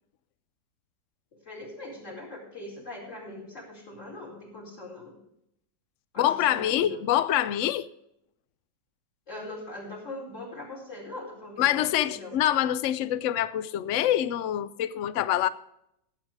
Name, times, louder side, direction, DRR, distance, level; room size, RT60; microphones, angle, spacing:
voice 1, 1.3-5.2 6.1-7.0 9.3-12.3, left 2 dB, 40° left, 4.9 m, -41 dB
voice 2, 6.2-7.9 11.6-15.5, left 12 dB, 90° left, 0.6 m, -25 dB
15.0 x 8.0 x 4.8 m
omnidirectional pair, 2.0 m